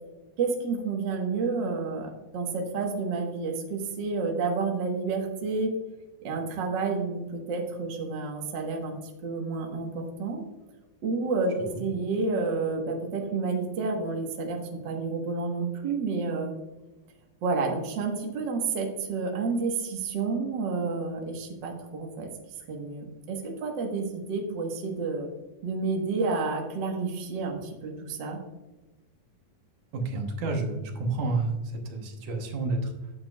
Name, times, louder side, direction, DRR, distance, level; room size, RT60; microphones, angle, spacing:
voice 1, 0.4-5.7 6.2-10.4 11.0-14.6 14.8-16.5 17.4-22.3 22.7-25.3 25.6-28.4, right 4 dB, 50° right, 1 dB, 1.4 m, -30 dB
voice 2, 29.9-33.1, right 3 dB, 75° right, 3 dB, 2.5 m, -30 dB
9.8 x 7.7 x 2.3 m, 1.1 s
omnidirectional pair, 3.7 m